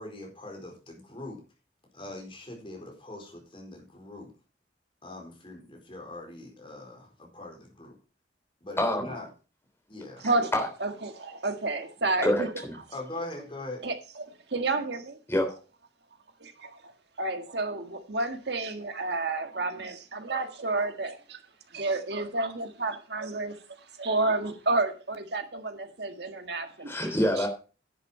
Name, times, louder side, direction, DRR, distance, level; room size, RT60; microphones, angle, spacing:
voice 1, 0.0-1.4 1.9-4.3 5.0-8.0 8.6-9.3 9.9-10.2 12.2-12.3 12.9-13.8, left 2 dB, 30° left, 4.5 m, -41 dB
voice 2, 8.8-9.1 10.5-10.7 12.2-12.7 15.3-15.5 26.9-27.5, equal, 15° left, 3.3 m, -26 dB
voice 3, 10.8-12.5 13.8-15.2 16.4-16.8 17.2-21.4 21.7-23.6 24.0-26.9 27.4-27.5, right 2 dB, 65° right, 1.7 m, -30 dB
10.5 x 8.5 x 4.4 m
head